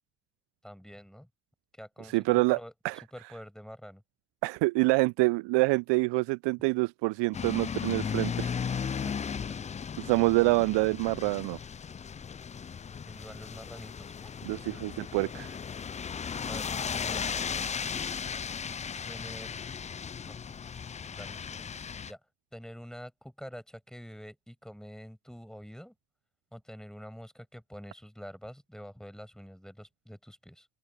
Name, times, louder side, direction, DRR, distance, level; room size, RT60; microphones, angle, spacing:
voice 1, 0.6-1.3 1.7-2.7 3.1-4.0 13.1-14.4 16.5-17.4 19.1-19.6 20.2-20.5 21.1-21.7 22.1-22.2 22.5-25.9 26.5-30.7, equal, ahead, 6.4 m, -47 dB
voice 2, 2.1-2.6 2.8-3.0 4.4-8.5 10.0-11.6 14.4-15.6, right 24 dB, 65° right, 0.7 m, -26 dB
sound 1, 7.3-22.1, left 6 dB, 15° left, 0.4 m, -36 dB
open air
hypercardioid pair, 50°, 47 cm